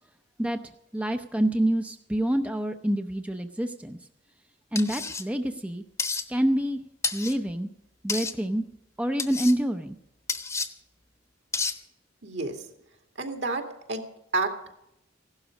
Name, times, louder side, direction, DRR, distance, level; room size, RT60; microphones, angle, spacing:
voice 1, 0.9-4.0 4.7-5.8 6.3-6.8 7.1-7.7 8.0-8.6 9.0-10.0, right 1 dB, 5° right, 6 dB, 0.6 m, -27 dB
sound 1, 4.8-5.2 6.0-6.2 7.0-7.4 8.1-8.3 9.2-9.5 10.3-10.7 11.5-11.8, left 4 dB, 15° left, 1.0 m, -30 dB
voice 2, 12.2-12.6 13.2-14.0 14.3-14.7, right 3 dB, 65° right, 4 dB, 2.4 m, -30 dB
16.0 x 12.0 x 6.4 m, 0.81 s
head